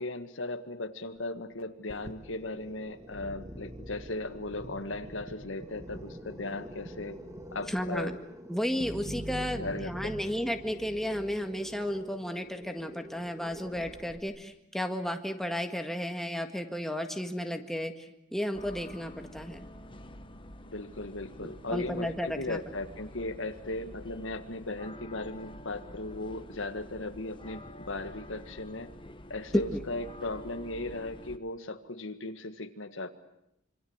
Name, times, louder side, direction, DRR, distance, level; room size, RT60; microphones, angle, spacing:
voice 1, 0.0-7.2 7.5-8.2 9.6-10.1 20.7-29.0 29.3-33.1, left 2 dB, 80° left, 9 dB, 1.8 m, -37 dB
sound 1, 1.9-14.2, right 1 dB, 15° right, 1.9 m, -44 dB
voice 2, 7.7-8.1 8.5-19.7 21.4-22.6 29.7-29.8, equal, ahead, 5 dB, 1.7 m, -33 dB
sound 2, 18.5-31.4, left 1 dB, 25° left, 1.3 m, -48 dB
26.5 x 25.5 x 8.1 m, 0.79 s
head